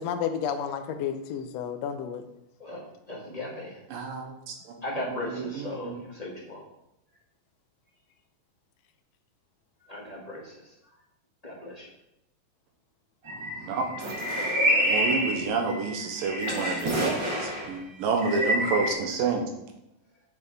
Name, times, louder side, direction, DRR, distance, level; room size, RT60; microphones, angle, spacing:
voice 1, 0.0-2.2, left 8 dB, 85° left, 7 dB, 1.4 m, -31 dB
voice 2, 3.1-3.8 4.8-6.6 9.9-10.7 11.4-11.9 13.6-13.8 14.3-15.0, left 1 dB, 20° left, -5 dB, 1.2 m, -37 dB
voice 3, 3.9-4.5 4.9-6.0 13.6-13.8 14.8-19.4, right 4 dB, 80° right, 3 dB, 2.8 m, -29 dB
sound 1, 13.3-17.7 18.2-18.9, equal, 40° right, 2.0 m, -28 dB
9.0 x 6.5 x 4.2 m, 0.85 s
omnidirectional pair, 4.0 m